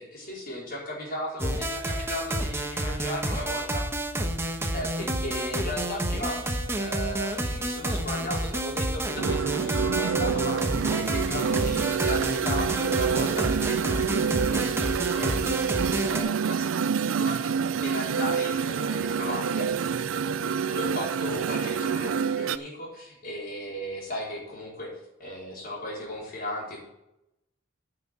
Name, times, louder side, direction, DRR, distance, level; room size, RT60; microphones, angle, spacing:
voice 1, 0.0-3.8 4.7-19.7 20.6-24.9 25.2-26.8, left 1 dB, 50° left, -4 dB, 4.5 m, -36 dB
sound 1, 1.4-16.2, right 1 dB, 15° right, 1.2 m, -30 dB
sound 2, 9.2-22.6, right 6 dB, 85° right, 0.4 m, -27 dB
9.4 x 6.2 x 8.0 m, 0.88 s
head